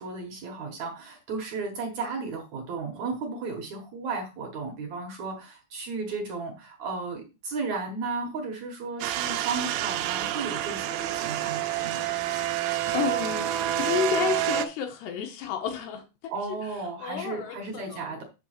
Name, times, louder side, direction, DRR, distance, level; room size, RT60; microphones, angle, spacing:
voice 1, 0.0-12.1 16.3-18.2, right 4 dB, 70° right, 1.7 m, -34 dB
sound 1, 9.0-14.7, right 12 dB, 85° right, 2.2 m, -28 dB
voice 2, 12.4-16.3 17.0-18.2, left 8 dB, 75° left, 3.0 m, -32 dB
8.5 x 3.3 x 6.4 m
omnidirectional pair, 4.9 m